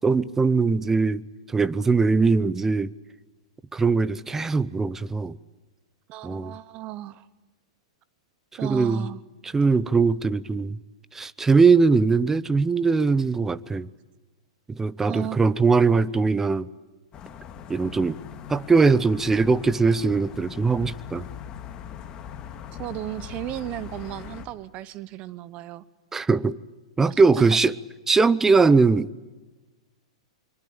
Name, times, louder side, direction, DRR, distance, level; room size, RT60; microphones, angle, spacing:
voice 1, 0.0-1.2 1.5-2.9 3.7-5.4 6.2-6.5 8.6-9.1 9.5-10.8 11.1-13.9 14.7-16.7 17.7-18.2 18.5-21.3 26.1-26.6 27.0-27.7 28.1-29.1, right 4 dB, 10° right, 0.8 m, -21 dB
voice 2, 6.1-7.3 8.6-9.2 15.1-15.4 22.8-25.8 27.1-27.6, right 15 dB, 40° right, 0.9 m, -35 dB
sound 1, 17.1-24.5, left 8 dB, 30° left, 2.2 m, -40 dB
25.0 x 22.5 x 8.8 m
hypercardioid pair, 120°, 3 cm